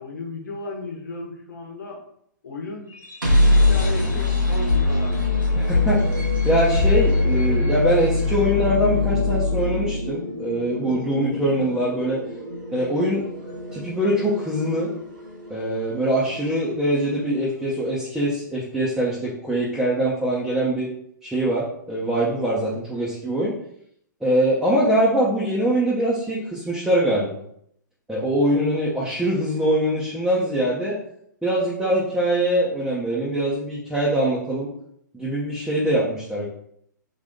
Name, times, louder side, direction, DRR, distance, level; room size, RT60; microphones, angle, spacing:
voice 1, 0.0-2.0 2.4-2.9 3.5-5.2, left 3 dB, 65° left, 0 dB, 1.1 m, -34 dB
sound 1, 2.9-16.8, left 2 dB, 90° right, 1.5 m, -23 dB
voice 2, 5.6-12.2 12.7-13.3 13.7-14.9 15.5-20.9 21.2-23.6 24.2-27.4 28.1-31.0 31.4-34.7 35.1-36.5, right 1 dB, 5° right, -8 dB, 0.8 m, -23 dB
3.9 x 2.6 x 3.6 m, 0.70 s
figure-of-eight pair, 120°, 11 cm